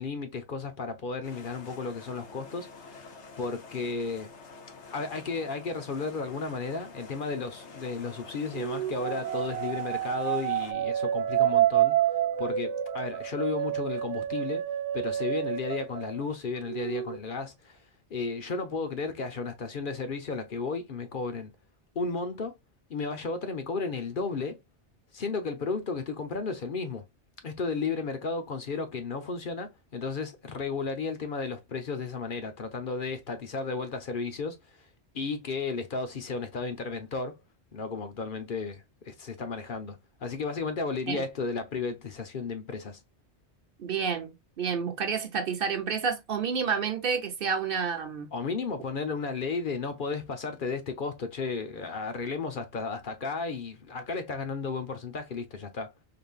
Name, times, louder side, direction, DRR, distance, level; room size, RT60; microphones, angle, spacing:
voice 1, 0.0-3.1 3.4-4.3 4.9-12.0 12.4-14.6 14.9-17.8 18.1-21.5 22.0-22.5 22.9-24.6 25.1-27.0 27.4-34.6 35.1-37.4 37.7-43.0 48.3-55.9, left 4 dB, 50° left, 0.9 m, -33 dB
sound 1, 1.2-10.7, left 4 dB, 80° left, 1.2 m, -48 dB
sound 2, 8.5-16.2 16.6-17.2, right 12 dB, 85° right, 0.9 m, -28 dB
voice 2, 43.8-48.3, right 6 dB, 55° right, 0.9 m, -30 dB
3.9 x 3.4 x 2.4 m
omnidirectional pair, 1.1 m